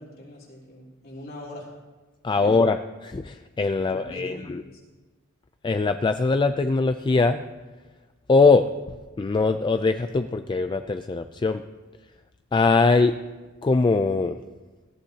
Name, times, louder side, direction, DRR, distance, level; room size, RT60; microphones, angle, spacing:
voice 1, 0.0-1.7 2.3-2.6 3.7-4.8, left 1 dB, 50° left, -4 dB, 3.8 m, -43 dB
voice 2, 2.2-4.6 5.6-7.4 8.3-8.7 9.2-11.6 12.5-13.2 13.6-14.4, left 3 dB, 20° left, 9 dB, 0.3 m, -21 dB
18.5 x 14.5 x 2.8 m, 1.3 s
head